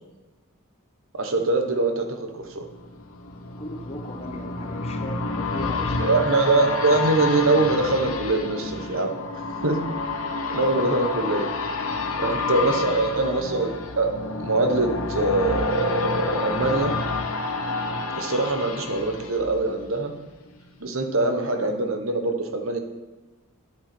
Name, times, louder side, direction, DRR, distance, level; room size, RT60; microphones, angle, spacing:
voice 1, 1.1-2.7 6.0-9.1 9.6-9.8 10.5-11.5 12.2-16.9 18.2-20.1 20.8-22.8, right 2 dB, 65° right, 5 dB, 1.2 m, -23 dB
sound 1, 2.4-20.2 20.6-20.7, left 3 dB, 70° left, 1.1 m, -29 dB
voice 2, 3.6-6.6 12.0-13.0, left 1 dB, 25° left, 4 dB, 1.0 m, -38 dB
11.5 x 8.4 x 4.4 m, 1.2 s
head